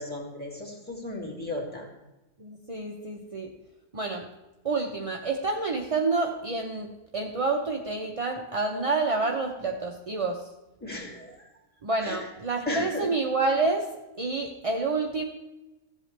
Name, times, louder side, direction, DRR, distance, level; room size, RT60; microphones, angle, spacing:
voice 1, 0.0-1.9 10.8-11.4 12.0-12.2 12.7-13.1, left 1 dB, 5° left, -1 dB, 2.5 m, -34 dB
voice 2, 2.4-3.5 3.9-4.2 4.6-6.9 7.1-10.4 11.8-13.9 14.2-15.2, right 3 dB, 35° right, 0 dB, 0.5 m, -28 dB
14.5 x 7.8 x 3.3 m, 1.0 s
omnidirectional pair, 1.6 m